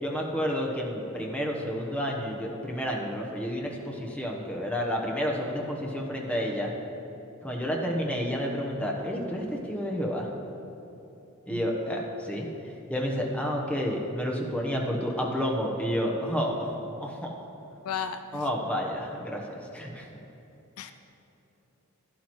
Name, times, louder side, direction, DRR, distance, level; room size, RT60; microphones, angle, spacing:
voice 1, 0.0-6.7 7.4-10.3 11.5-12.5 12.9-16.7 17.0-17.3 18.3-20.1, equal, 5° left, -1 dB, 1.1 m, -30 dB
voice 2, 17.8-18.5 20.8-20.9, left 7 dB, 75° left, 9 dB, 0.4 m, -35 dB
11.5 x 11.5 x 3.1 m, 3.0 s
head